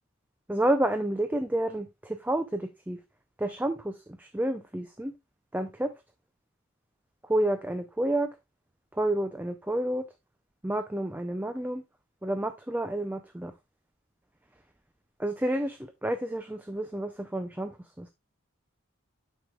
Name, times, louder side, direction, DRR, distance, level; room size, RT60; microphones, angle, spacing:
voice 1, 0.5-3.0 3.4-5.1 5.5-5.9 7.2-8.3 8.9-10.0 10.6-11.8 12.2-13.5 15.2-18.1, right 1 dB, 10° right, 7 dB, 0.4 m, -30 dB
9.1 x 6.4 x 2.3 m, 0.22 s
head